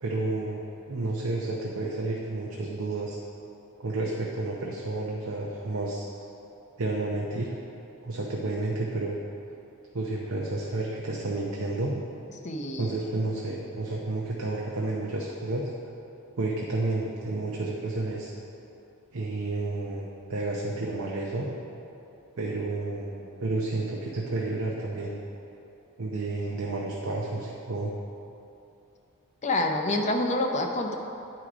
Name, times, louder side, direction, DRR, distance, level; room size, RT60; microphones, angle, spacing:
voice 1, 0.0-0.6 0.9-3.2 3.8-6.1 6.8-7.5 8.0-9.2 9.9-12.0 12.8-15.9 16.4-18.3 19.1-21.5 22.4-25.2 26.0-27.9, right 2 dB, 65° right, -3 dB, 0.7 m, -31 dB
voice 2, 12.4-12.9 29.4-31.0, left 2 dB, 30° left, 3 dB, 0.6 m, -27 dB
9.7 x 4.6 x 4.9 m, 2.8 s
head